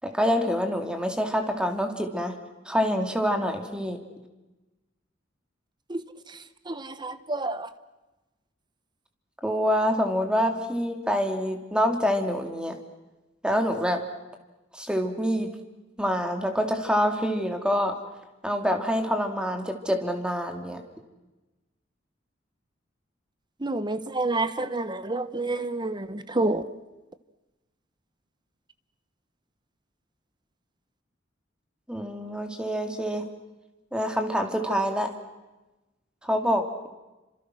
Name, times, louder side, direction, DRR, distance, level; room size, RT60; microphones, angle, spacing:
voice 1, 0.0-2.4 2.6-4.0 9.4-12.8 13.4-14.0 14.7-15.5 16.0-17.9 18.4-20.8 31.9-33.3 33.9-35.1 36.2-36.9, equal, 5° right, 5 dB, 2.8 m, -26 dB
voice 2, 6.7-7.7 23.6-26.6, right 2 dB, 25° right, 13 dB, 1.1 m, -28 dB
30.0 x 26.5 x 6.3 m, 1.1 s
head